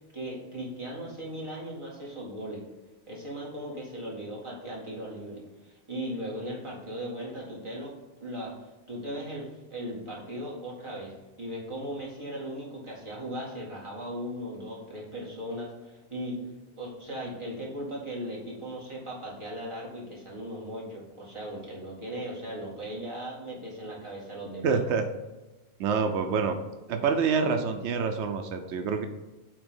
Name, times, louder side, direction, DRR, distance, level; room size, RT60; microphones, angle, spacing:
voice 1, 0.1-2.6 3.1-16.4 16.7-24.8, equal, 25° right, -5 dB, 2.1 m, -38 dB
voice 2, 24.6-25.0 25.8-26.6 26.9-29.1, right 5 dB, 90° right, 6 dB, 0.9 m, -26 dB
8.6 x 3.0 x 5.4 m, 1.1 s
omnidirectional pair, 1.1 m